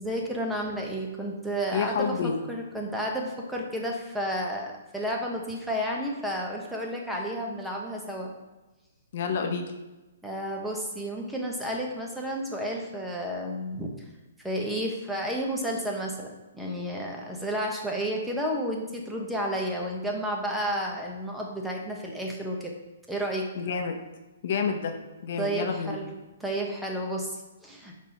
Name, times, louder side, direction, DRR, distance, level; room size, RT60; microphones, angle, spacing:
voice 1, 0.0-8.3 10.2-13.9 14.4-22.7 23.1-23.5 25.4-26.1 26.4-28.0, equal, 5° right, -1 dB, 1.0 m, -31 dB
voice 2, 1.7-2.4 9.1-9.7 23.6-24.0 24.4-24.9 25.2-26.0, left 6 dB, 50° left, 4 dB, 0.8 m, -28 dB
5.4 x 4.3 x 5.1 m, 1.1 s
hypercardioid pair, 150°, 0 cm